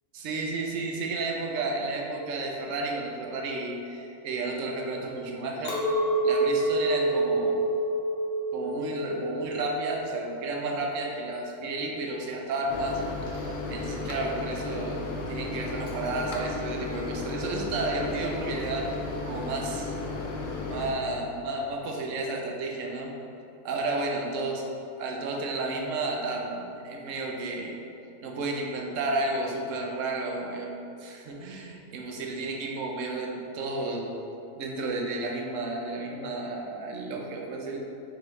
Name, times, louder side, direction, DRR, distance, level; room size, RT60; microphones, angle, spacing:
voice 1, 0.1-5.8 6.2-7.6 8.5-13.0 13.7-18.9 19.3-19.9 20.6-23.1 23.6-24.6 25.0-27.8 28.2-30.7 31.0-34.2 34.5-37.9, right 2 dB, 75° right, 0 dB, 0.9 m, -32 dB
Chink clink, 5.6-11.0, right 1 dB, 50° left, 0.9 m, -28 dB
Microwave oven, 12.7-20.9, left 3 dB, 75° left, 1.0 m, -34 dB
3.9 x 3.9 x 3.1 m, 2.8 s
omnidirectional pair, 1.4 m